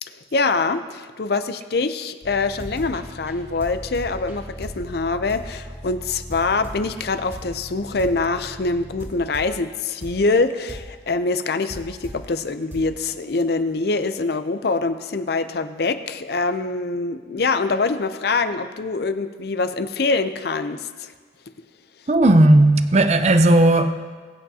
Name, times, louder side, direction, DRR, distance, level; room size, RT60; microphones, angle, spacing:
voice 1, 0.0-21.1, left 3 dB, 60° left, 0.6 m, -24 dB
sound 1, 2.2-12.3 12.7-13.1, equal, 15° right, 2.1 m, -38 dB
voice 2, 22.1-23.9, right 1 dB, 35° right, 0.5 m, -14 dB
21.5 x 8.7 x 2.8 m
head